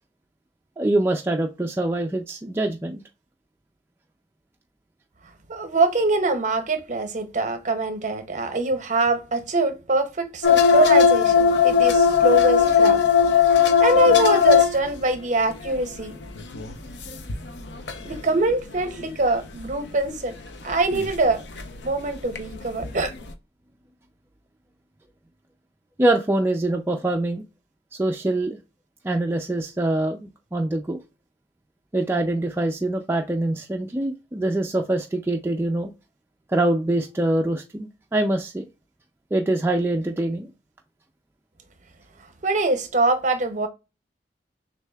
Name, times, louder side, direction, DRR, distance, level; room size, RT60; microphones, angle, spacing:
voice 1, 0.8-3.0 26.0-27.4 27.9-28.6 29.0-31.0 31.9-35.9 36.5-38.7 39.3-40.5, right 1 dB, 15° right, 0.3 m, -24 dB
voice 2, 5.5-13.0 13.8-16.2 18.0-20.4 20.6-21.4 21.8-23.1 42.4-43.7, right 2 dB, 45° right, 0.7 m, -23 dB
sound 1, 10.4-15.1 15.5-16.0 16.2-18.2 18.9-19.0 20.9-21.3 21.6-21.7 22.3-22.9 23.3-23.4, left 7 dB, 80° left, 0.6 m, -18 dB
6.5 x 2.7 x 2.3 m
head